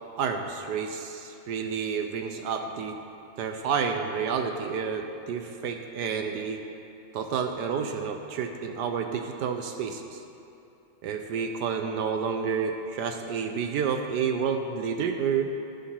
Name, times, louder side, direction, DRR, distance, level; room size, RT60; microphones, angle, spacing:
voice 1, 0.2-3.0 3.4-6.6 7.1-10.2 11.0-15.5, right 6 dB, 70° right, 5 dB, 1.0 m, -30 dB
11.5 x 10.5 x 4.4 m, 2.7 s
omnidirectional pair, 2.2 m